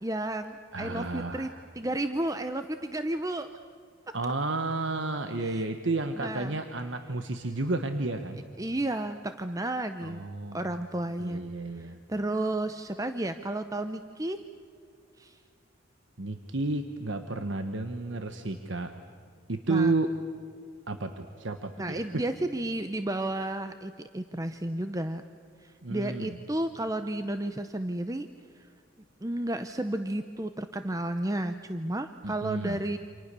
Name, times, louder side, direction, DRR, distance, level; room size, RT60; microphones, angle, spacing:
voice 1, 0.0-1.5 1.8-3.5 5.4-5.7 6.2-6.6 8.6-10.2 10.5-11.4 11.7-14.4 15.2-15.4 19.7-19.9 21.8-25.2 25.6-28.3 28.5-28.7 29.2-33.0, right 1 dB, 15° right, 8 dB, 0.7 m, -32 dB
voice 2, 0.7-1.6 4.1-8.4 10.0-10.6 11.2-12.0 16.2-18.9 19.5-20.1 20.9-22.3 25.8-26.4 32.2-32.8, right 2 dB, 65° right, 7 dB, 1.3 m, -31 dB
29.0 x 27.0 x 6.9 m, 2.4 s
head